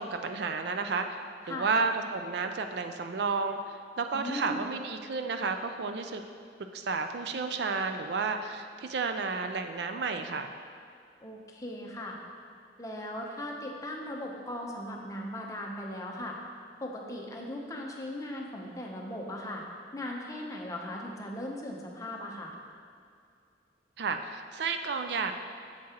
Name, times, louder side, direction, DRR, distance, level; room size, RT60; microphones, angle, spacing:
voice 1, 0.0-6.2 6.7-10.5 24.0-25.3, right 4 dB, 65° right, 7 dB, 0.4 m, -32 dB
voice 2, 4.1-4.7 11.2-12.2 12.8-16.4 16.8-19.6 19.9-22.5, left 1 dB, 20° left, 0 dB, 0.7 m, -38 dB
8.4 x 7.5 x 2.9 m, 2.3 s
head